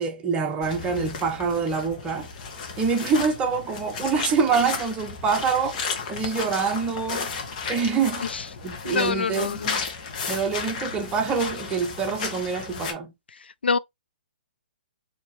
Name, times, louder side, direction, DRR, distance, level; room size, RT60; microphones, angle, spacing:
voice 1, 0.0-2.3 2.8-5.8 6.1-7.3 7.7-8.3 8.6-9.8 10.3-13.1, right 5 dB, 20° right, 0.9 m, -25 dB
sound 1, 0.6-12.9, left 5 dB, 45° left, 1.3 m, -34 dB
voice 2, 8.8-9.8 13.6-13.8, left 5 dB, 90° left, 0.4 m, -25 dB
4.3 x 2.9 x 3.3 m
hypercardioid pair, 140°, 5 cm